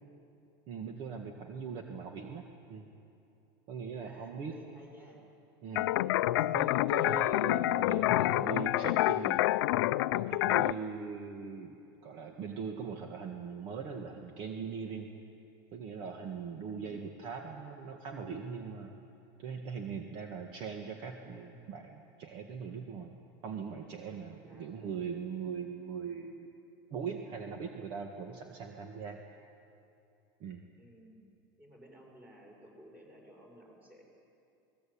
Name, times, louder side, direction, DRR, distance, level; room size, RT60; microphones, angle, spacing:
voice 1, 0.7-2.4 2.7-2.9 3.7-4.5 5.6-5.9 6.4-9.4 10.1-11.8 12.0-15.1 15.7-18.9 19.4-23.2 23.4-26.5 26.9-29.2 30.4-30.6, right 6 dB, 45° right, 3 dB, 1.9 m, -40 dB
voice 2, 4.0-5.2 10.6-10.8 16.7-17.0 24.5-25.0 30.8-31.2 31.6-34.0, equal, 15° right, 0 dB, 6.3 m, -55 dB
sound 1, 5.7-10.7, left 16 dB, 75° left, 0.6 m, -28 dB
28.5 x 20.0 x 8.7 m, 2.7 s
supercardioid pair, 155°, 12 cm